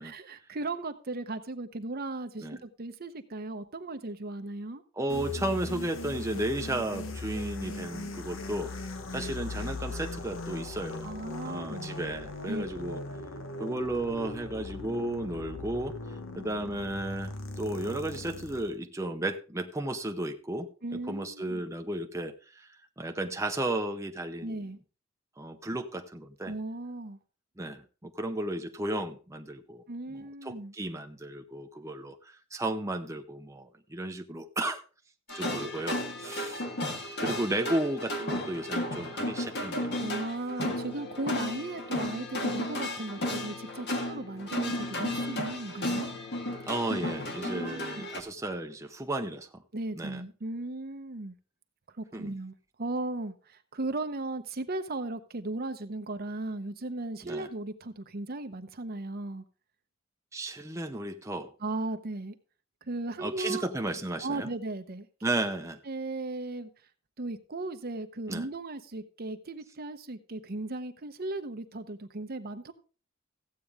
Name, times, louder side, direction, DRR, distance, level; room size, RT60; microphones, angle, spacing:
voice 1, 0.0-4.8 11.0-11.9 12.5-12.6 20.8-21.6 24.4-24.8 26.4-27.2 29.9-30.7 40.0-46.1 47.4-48.1 49.7-51.4 51.9-59.4 61.6-62.4 62.8-63.7 64.2-65.1 65.8-66.7 67.2-72.7, right 2 dB, 50° right, 0.9 m, -36 dB
voice 2, 5.0-8.7 9.1-11.1 11.4-13.0 13.6-16.0 16.3-20.7 21.1-24.6 25.4-26.5 27.6-29.8 30.4-34.8 35.3-36.7 37.2-40.0 46.7-49.6 49.9-50.2 52.1-52.3 57.2-57.5 60.3-61.5 63.2-64.5 65.2-65.8 68.3-68.5, right 1 dB, 15° right, 0.8 m, -34 dB
sound 1, 5.1-18.7, left 2 dB, 80° left, 1.2 m, -39 dB
sound 2, 35.3-48.2, left 1 dB, 60° left, 1.8 m, -34 dB
14.5 x 8.5 x 3.6 m
head